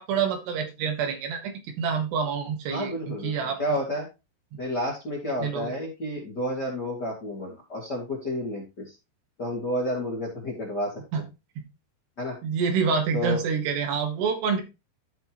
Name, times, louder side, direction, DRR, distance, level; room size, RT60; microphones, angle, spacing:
voice 1, 0.0-3.6 4.5-4.6 5.4-5.7 11.1-11.2 12.4-14.6, right 6 dB, 75° right, 4 dB, 3.6 m, -27 dB
voice 2, 2.7-4.1 4.6-8.9 9.4-11.0 12.2-12.4 13.1-13.4, left 1 dB, 30° left, -3 dB, 2.2 m, -30 dB
13.5 x 5.5 x 3.0 m, 0.26 s
omnidirectional pair, 5.0 m